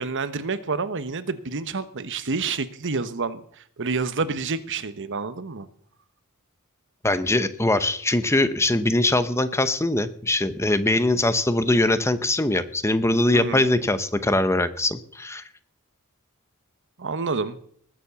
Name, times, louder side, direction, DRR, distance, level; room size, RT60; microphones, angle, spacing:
voice 1, 0.0-5.7 13.3-13.6 17.0-17.6, right 4 dB, 55° right, 13 dB, 1.0 m, -28 dB
voice 2, 7.0-15.4, left 2 dB, 10° left, 12 dB, 0.8 m, -22 dB
19.5 x 7.5 x 6.9 m, 0.62 s
head